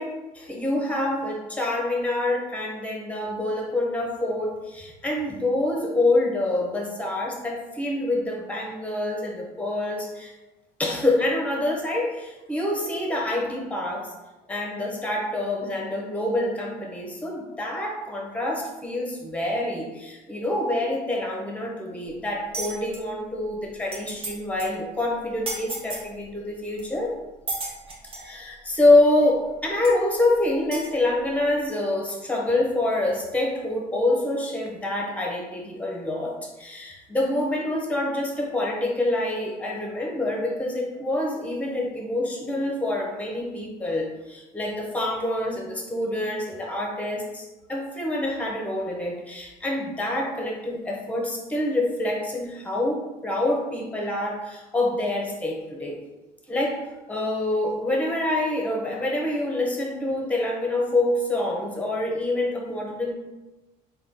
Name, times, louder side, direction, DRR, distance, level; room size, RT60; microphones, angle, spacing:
voice 1, 0.0-10.3 10.8-14.1 14.5-27.2 28.2-56.0 56.5-63.1, left 1 dB, 10° left, -1 dB, 0.8 m, -26 dB
sound 1, 22.5-23.0 23.5-23.6 23.8-24.3 24.6-24.8 25.5-26.1 26.8-26.9 27.5-28.3 29.2-29.3 29.8-29.9 30.7-30.9, right 2 dB, 35° right, 0.9 m, -33 dB
3.6 x 2.3 x 3.5 m, 1.1 s
cardioid pair, 110°, 17 cm